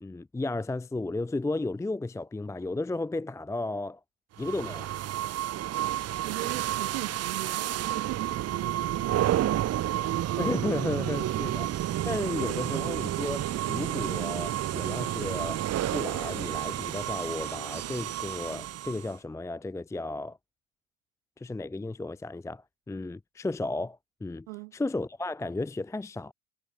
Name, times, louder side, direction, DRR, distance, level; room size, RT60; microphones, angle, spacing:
voice 1, 0.0-4.0 4.4-4.9 10.4-15.7 15.9-20.4 21.4-24.5 24.7-26.3, left 2 dB, 5° left, 0.8 m, -34 dB
sound 1, 4.4-19.2, right 13 dB, 35° right, 1.2 m, -30 dB
voice 2, 6.2-9.7 24.5-24.8, right 27 dB, 60° right, 4.8 m, -40 dB
figure-of-eight pair, 65°, 43 cm